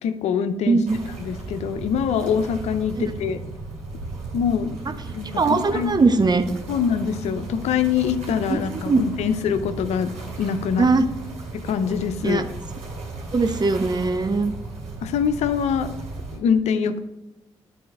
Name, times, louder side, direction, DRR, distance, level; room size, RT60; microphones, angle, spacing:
voice 1, 0.0-0.8 1.2-3.4 4.3-4.8 5.1-6.0 6.7-10.1 10.4-10.9 11.5-12.5 15.0-15.9 16.3-17.0, left 7 dB, 70° left, 11 dB, 0.6 m, -24 dB
voice 2, 0.7-1.0 3.0-3.1 4.8-4.9 5.4-6.4 8.5-9.0 10.8-11.0 12.2-12.4 13.3-14.5, right 3 dB, 35° right, 8 dB, 1.0 m, -20 dB
sound 1, 0.8-16.4, right 3 dB, 75° right, 3.0 m, -35 dB
11.5 x 4.2 x 4.3 m, 1.0 s
hypercardioid pair, 45°, 12 cm